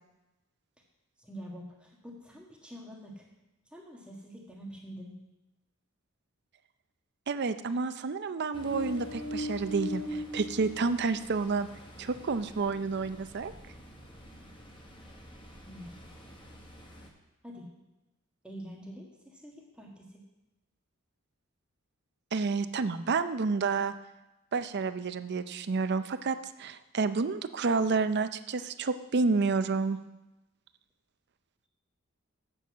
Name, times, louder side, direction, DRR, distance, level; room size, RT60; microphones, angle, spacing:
voice 1, 1.2-3.3 3.7-5.1 15.6-16.2 17.4-17.7 18.4-20.2, equal, 5° right, -2 dB, 1.5 m, -46 dB
voice 2, 7.3-11.7 12.0-13.5 22.3-23.9 24.5-30.0, right 4 dB, 55° right, 11 dB, 0.5 m, -30 dB
Ocean, 8.5-17.1, left 1 dB, 25° left, 1.2 m, -42 dB
7.9 x 6.8 x 7.3 m, 1.0 s
head